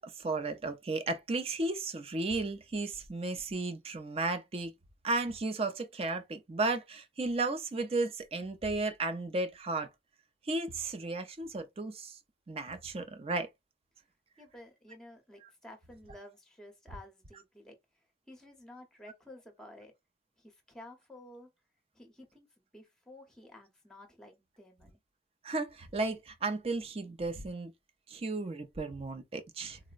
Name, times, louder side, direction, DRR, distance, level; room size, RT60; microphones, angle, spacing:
voice 1, 0.0-4.7 5.0-9.9 10.4-12.2 12.5-13.5 25.4-27.7 28.1-29.8, right 3 dB, 35° right, 0.5 m, -34 dB
voice 2, 14.4-17.8 18.3-19.9 20.4-21.5 21.9-25.0, left 1 dB, 5° left, 0.8 m, -52 dB
3.8 x 2.1 x 2.4 m
head